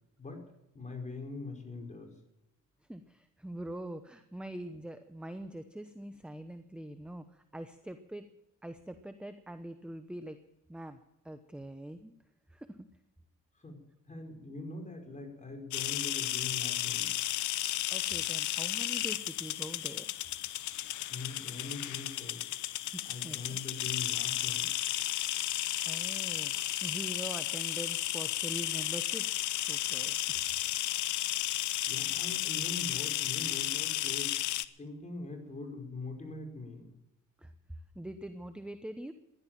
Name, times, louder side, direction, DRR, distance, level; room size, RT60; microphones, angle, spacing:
voice 1, 0.7-2.1 13.6-17.1 21.1-22.5 23.0-24.7 31.9-34.5 34.8-36.9, left 3 dB, 25° left, 2 dB, 5.1 m, -42 dB
voice 2, 2.9-8.3 8.6-10.4 10.7-12.1 12.5-12.7 17.9-20.1 22.9-23.6 25.9-26.5 26.8-29.2 29.6-30.4 37.4-37.5 37.9-39.1, right 1 dB, 5° right, 9 dB, 0.9 m, -43 dB
sound 1, 15.7-34.6, left 13 dB, 75° left, 0.7 m, -33 dB
15.0 x 11.0 x 7.5 m, 0.87 s
cardioid pair, 90°, 30 cm